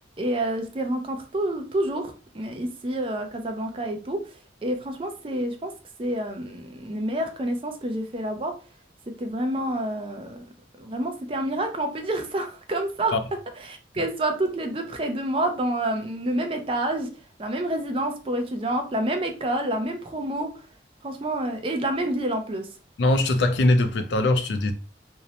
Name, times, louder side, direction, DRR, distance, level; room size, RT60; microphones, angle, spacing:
voice 1, 0.2-4.2 4.6-5.7 6.0-8.5 9.2-10.5 10.8-13.1 13.6-17.1 17.4-20.5 21.0-22.7, right 1 dB, 30° right, 0.4 m, -28 dB
voice 2, 23.0-24.7, left 2 dB, 75° left, 0.4 m, -21 dB
2.6 x 2.0 x 2.7 m
head